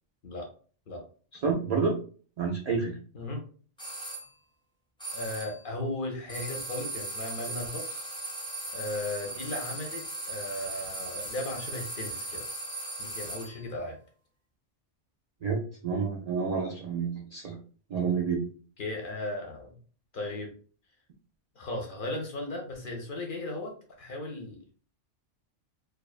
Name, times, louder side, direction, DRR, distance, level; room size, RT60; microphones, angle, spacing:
voice 1, 1.4-2.0 2.4-3.0 15.4-17.6 17.9-18.5, right 5 dB, 70° right, -1 dB, 0.3 m, -29 dB
sound 1, 3.8-4.3 5.0-5.6 6.3-13.7, right 2 dB, 5° left, 0.5 m, -38 dB
voice 2, 5.1-8.1 8.7-12.4 13.0-14.0 18.8-19.8 20.1-20.5 21.6-23.7 24.0-24.6, left 2 dB, 55° left, 1 dB, 0.6 m, -36 dB
2.3 x 2.3 x 2.3 m, 0.42 s
omnidirectional pair, 1.2 m